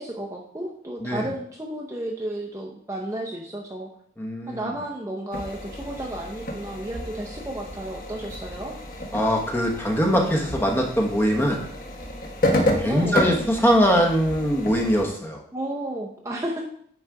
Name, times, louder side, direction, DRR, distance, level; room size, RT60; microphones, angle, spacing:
voice 1, 0.0-3.9 4.5-8.8 12.8-13.3 15.5-16.6, right 1 dB, 15° right, -1 dB, 0.7 m, -32 dB
voice 2, 4.2-4.7 9.1-11.6 12.8-15.4, equal, 10° left, 1 dB, 1.0 m, -22 dB
sound 1, 5.3-15.0, left 1 dB, 45° left, 1.2 m, -30 dB
9.6 x 3.9 x 4.7 m, 0.62 s
head